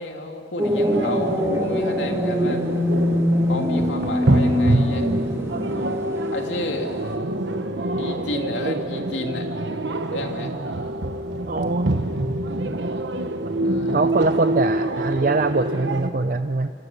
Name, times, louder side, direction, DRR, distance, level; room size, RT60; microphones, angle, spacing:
voice 1, 0.0-2.6 3.5-5.1 6.3-7.1 8.0-9.5 10.1-10.5 13.6-14.1, left 2 dB, 80° left, 3 dB, 2.8 m, -31 dB
sound 1, 0.6-7.2, equal, 15° right, 2.1 m, -24 dB
sound 2, 0.9-16.1, right 1 dB, 75° right, 1.1 m, -26 dB
voice 2, 11.5-12.1 13.9-16.7, right 3 dB, 45° right, 9 dB, 0.6 m, -23 dB
28.5 x 26.5 x 6.8 m, 2.5 s
head